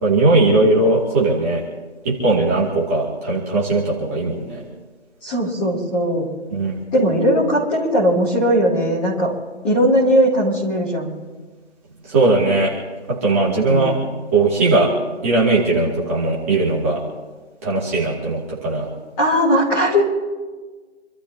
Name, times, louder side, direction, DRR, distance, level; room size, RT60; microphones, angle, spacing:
voice 1, 0.0-1.6 2.0-4.6 6.5-6.8 12.1-12.7 13.2-13.9 14.3-14.9 15.2-17.0 17.6-18.9, right 2 dB, 10° right, -6 dB, 2.6 m, -18 dB
voice 2, 5.2-6.3 6.9-9.3 9.6-11.1 13.7-13.9 19.2-20.0, equal, 5° left, -12 dB, 2.2 m, -18 dB
28.5 x 14.0 x 2.9 m, 1.3 s
figure-of-eight pair, 175°, 36 cm